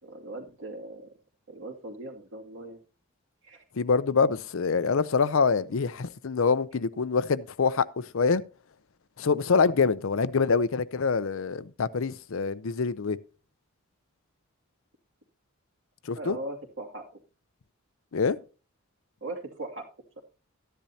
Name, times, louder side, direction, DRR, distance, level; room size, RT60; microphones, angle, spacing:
voice 1, 0.0-1.1 1.5-2.8 3.4-3.6 16.1-17.0 19.2-19.9, right 2 dB, 55° right, 2.5 m, -39 dB
voice 2, 3.8-7.9 8.1-8.4 9.2-13.2 16.1-16.4 18.1-18.4, left 5 dB, 70° left, 0.5 m, -25 dB
13.5 x 10.0 x 2.8 m
head